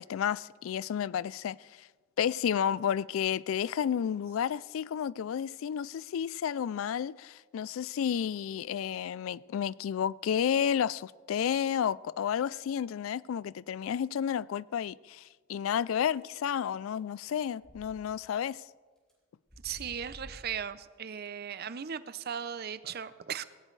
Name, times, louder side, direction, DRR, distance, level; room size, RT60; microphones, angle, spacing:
voice 1, 0.0-1.9 2.2-15.2 15.5-18.6, left 8 dB, 75° left, 0.3 m, -31 dB
sound 1, 17.3-17.9 18.4-18.5 19.1-19.2 19.5-20.6, equal, 5° left, 3.7 m, -50 dB
voice 2, 19.6-23.4, right 8 dB, 50° right, 0.5 m, -37 dB
18.0 x 16.5 x 3.2 m
head